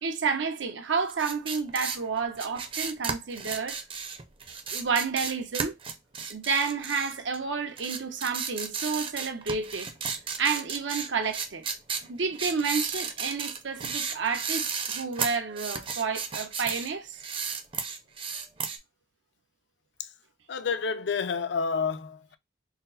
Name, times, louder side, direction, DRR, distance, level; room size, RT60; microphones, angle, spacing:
voice 1, 0.0-3.8 4.7-5.8 6.3-9.9 10.4-11.6 12.1-17.2, right 5 dB, 90° right, 0.7 m, -30 dB
sound 1, 1.1-7.4 7.8-16.9 17.2-18.8, right 6 dB, 30° right, 0.5 m, -34 dB
voice 2, 20.5-22.4, left 5 dB, 70° left, 0.4 m, -29 dB
4.1 x 2.0 x 4.0 m
head